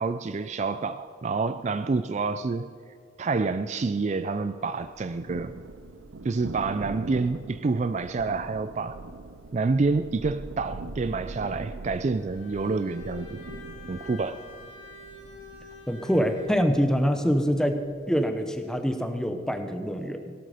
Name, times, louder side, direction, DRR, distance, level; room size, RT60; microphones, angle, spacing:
voice 1, 0.0-2.7 3.2-5.5 6.2-9.0 9.5-13.4 13.9-14.4, right 4 dB, 35° right, 12 dB, 0.3 m, -28 dB
Thunder, 4.8-18.0, right 3 dB, 70° right, 0.6 m, -42 dB
Bowed string instrument, 12.2-16.7, left 4 dB, 70° left, 2.5 m, -45 dB
voice 2, 15.9-17.8 18.1-20.3, equal, 5° left, 7 dB, 0.8 m, -25 dB
17.0 x 12.0 x 5.0 m, 2.2 s
head